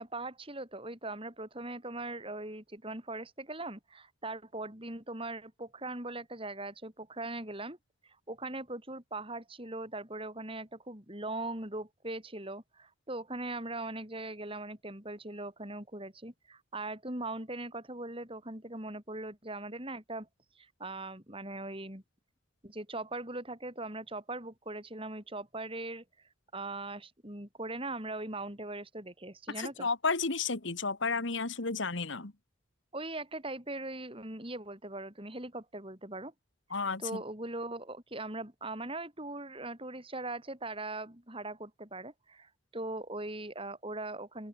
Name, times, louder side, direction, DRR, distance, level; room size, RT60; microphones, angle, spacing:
voice 1, 0.0-7.8 8.0-20.3 20.5-22.0 22.6-26.0 26.5-29.9 32.9-36.3 37.0-44.5, right 2 dB, 25° right, 5.0 m, -40 dB
voice 2, 29.5-32.3 36.7-37.2, left 4 dB, 65° left, 1.7 m, -32 dB
open air
head